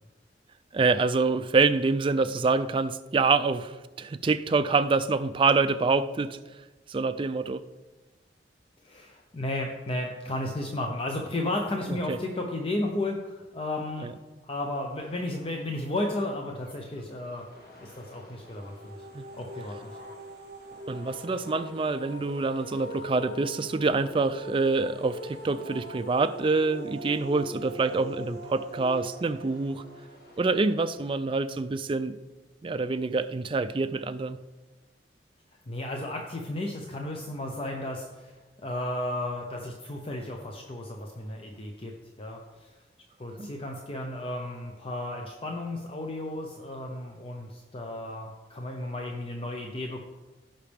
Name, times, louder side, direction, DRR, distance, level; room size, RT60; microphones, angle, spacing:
voice 1, 0.7-3.7 4.0-6.4 6.9-7.7 11.9-12.2 14.0-14.1 19.1-19.3 20.9-29.8 30.4-32.1 32.6-34.4 43.4-43.5, right 4 dB, 30° right, 0.4 m, -26 dB
voice 2, 8.8-14.1 14.4-17.4 17.8-19.0 19.3-20.0 35.7-38.3 38.6-42.7 43.2-50.0, left 1 dB, 35° left, 0.8 m, -33 dB
sound 1, 15.0-31.1, equal, 65° left, 1.6 m, -48 dB
sound 2, 18.3-31.2, equal, 65° right, 1.1 m, -44 dB
16.0 x 5.8 x 3.5 m
head